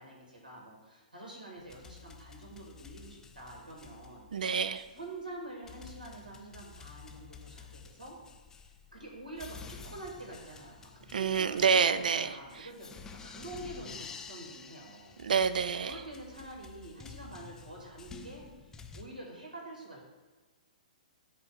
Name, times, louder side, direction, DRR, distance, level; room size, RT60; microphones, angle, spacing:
voice 1, 0.0-4.6 4.9-8.2 8.5-10.9 11.2-15.1 15.9-20.0, right 1 dB, 90° right, -2 dB, 1.9 m, -47 dB
sound 1, 1.6-19.0, left 5 dB, 10° left, 0.4 m, -51 dB
voice 2, 4.3-4.9 11.1-12.7 15.2-16.0, right 6 dB, 70° right, 14 dB, 0.4 m, -28 dB
7.4 x 2.5 x 5.5 m, 1.3 s
hypercardioid pair, 125°, 5 cm